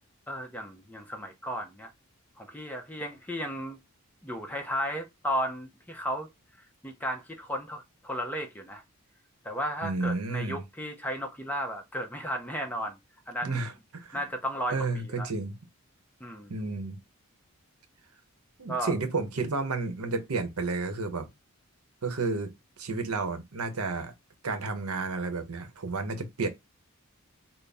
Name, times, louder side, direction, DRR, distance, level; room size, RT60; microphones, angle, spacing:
voice 1, 0.3-1.9 2.4-3.8 4.2-6.3 6.8-8.8 9.4-13.0 13.3-13.6 14.1-15.3 16.2-16.5 18.7-18.9, equal, 5° left, 0.6 m, -34 dB
voice 2, 9.8-10.6 13.4-14.2 14.7-15.5 16.5-17.0 18.6-21.3 22.0-22.5 22.8-24.1 24.4-26.5, right 3 dB, 80° right, 0.8 m, -31 dB
4.0 x 2.0 x 3.4 m
head